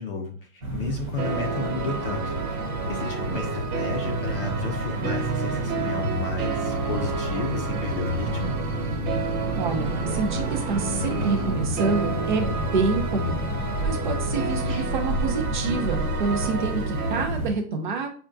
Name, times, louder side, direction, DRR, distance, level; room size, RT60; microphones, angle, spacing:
voice 1, 0.0-2.6 2.9-8.6, left 4 dB, 40° left, 2 dB, 0.5 m, -33 dB
sound 1, 0.6-17.5, right 1 dB, 20° right, 0.8 m, -29 dB
sound 2, 1.2-17.3, right 4 dB, 75° right, 1.1 m, -32 dB
voice 2, 9.6-13.4 13.8-18.1, right 4 dB, 35° right, 4 dB, 0.4 m, -27 dB
5.0 x 2.3 x 2.5 m, 0.43 s
hypercardioid pair, 165°, 46 cm